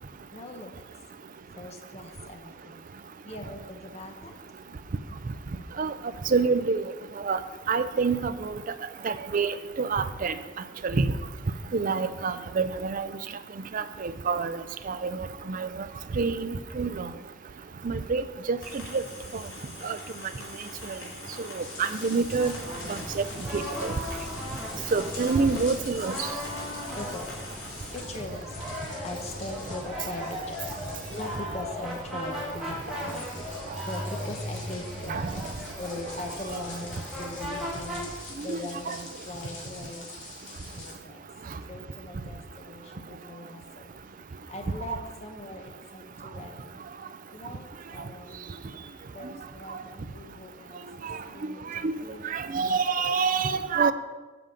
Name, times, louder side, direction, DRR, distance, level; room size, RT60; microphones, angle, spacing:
voice 1, 0.3-0.8 1.6-2.8 3.2-4.4 11.6-12.1 26.9-27.4 27.9-33.1 33.6-40.1 40.7-41.3 41.6-43.9 44.5-46.8 47.3-48.6 49.1-52.2, left 2 dB, 35° left, 3 dB, 0.9 m, -41 dB
voice 2, 6.3-6.8 7.2-7.4 7.7-8.6 9.0-10.3 10.8-11.1 11.7-13.1 13.7-14.6 14.9-15.7 16.2-17.1 17.8-18.6 18.9-19.0 19.8-20.0 21.6-22.5 22.9-23.2 23.5-23.9 24.9-26.1 35.1-35.3 38.5-38.6 38.9-39.0 51.0-51.2 51.8-51.9 52.3-53.9, right 4 dB, 45° right, 11 dB, 0.5 m, -27 dB
sound 1, 18.6-27.9, left 3 dB, 90° left, 3.1 m, -44 dB
sound 2, 21.6-40.9, left 3 dB, 65° left, 2.8 m, -46 dB
sound 3, 22.4-38.1, equal, ahead, 2.3 m, -37 dB
7.8 x 5.0 x 7.4 m, 1.2 s
head